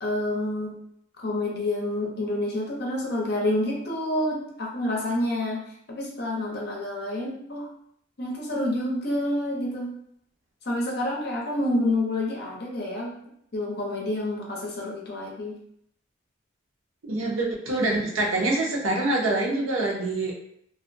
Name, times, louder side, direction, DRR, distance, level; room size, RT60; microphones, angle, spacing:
voice 1, 0.0-0.8 1.2-7.7 8.2-9.9 10.6-13.2 13.5-15.6, left 1 dB, 50° left, -2 dB, 0.6 m, -28 dB
voice 2, 17.1-20.3, right 2 dB, 85° right, -2 dB, 0.6 m, -25 dB
2.3 x 2.1 x 2.5 m, 0.70 s
head